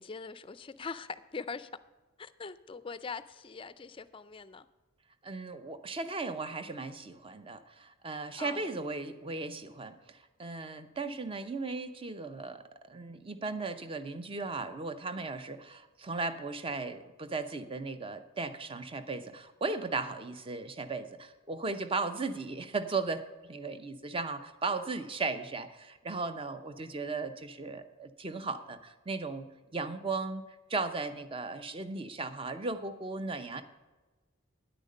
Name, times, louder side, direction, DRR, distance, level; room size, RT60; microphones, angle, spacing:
voice 1, 0.0-1.7 2.2-4.7 8.4-8.7, left 5 dB, 25° left, 0.4 m, -42 dB
voice 2, 5.2-9.9 10.4-12.6 12.9-29.5 29.7-30.4 30.7-33.6, right 3 dB, 25° right, 0.6 m, -36 dB
10.0 x 8.9 x 5.4 m
head